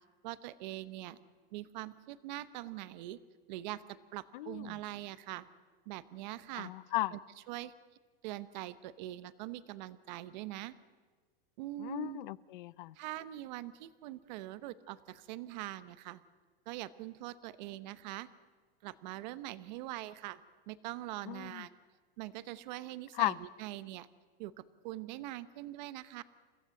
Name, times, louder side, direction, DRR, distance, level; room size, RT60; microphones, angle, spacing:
voice 1, 0.2-1.2 1.5-3.2 3.5-3.8 4.1-5.5 5.9-6.7 7.1-7.2 7.5-7.7 8.2-10.7 11.6-12.2 12.9-16.2 16.7-18.3 18.8-20.4 20.7-21.8 22.2-24.1 24.4-24.5 24.8-26.2, right 16 dB, 50° right, 15 dB, 0.9 m, -43 dB
voice 2, 4.3-4.7 6.6-7.1 11.8-12.9 21.3-21.6 23.2-23.4, left 17 dB, 60° left, 19 dB, 0.7 m, -35 dB
30.0 x 15.5 x 7.7 m, 1.4 s
supercardioid pair, 170°, 29 cm